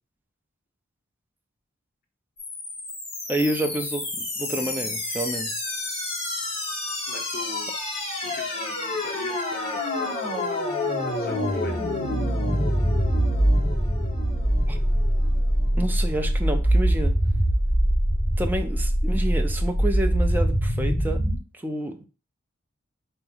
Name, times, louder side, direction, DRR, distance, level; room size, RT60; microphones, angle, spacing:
sound 1, 2.4-21.4, equal, 30° left, 1.6 m, -25 dB
voice 1, 3.3-5.5 14.7-14.8 15.8-17.1 18.4-21.2 21.5-22.1, right 1 dB, 10° right, 0.5 m, -29 dB
voice 2, 7.1-7.7 8.2-11.8, left 1 dB, 50° left, 1.0 m, -41 dB
4.4 x 2.9 x 3.8 m
head